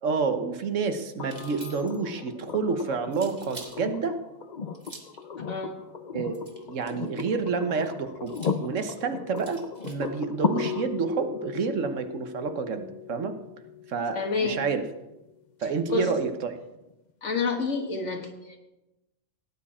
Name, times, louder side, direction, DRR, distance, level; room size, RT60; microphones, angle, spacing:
voice 1, 0.0-4.2 6.1-6.3 6.7-13.4 13.9-14.8 15.6-16.6, right 5 dB, 80° right, 8 dB, 1.4 m, -29 dB
sound 1, 1.2-15.1 16.9-17.0, left 6 dB, 45° left, 0.7 m, -36 dB
sound 2, 1.2-2.1 3.1-3.8 4.7-5.2 6.3-7.1 8.3-10.1, right 2 dB, 35° right, 1.7 m, -47 dB
voice 2, 5.5-5.8 14.1-14.6 15.9-16.1 17.2-18.6, left 4 dB, 70° left, 3 dB, 2.0 m, -28 dB
17.5 x 9.8 x 4.3 m, 0.98 s
omnidirectional pair, 1.3 m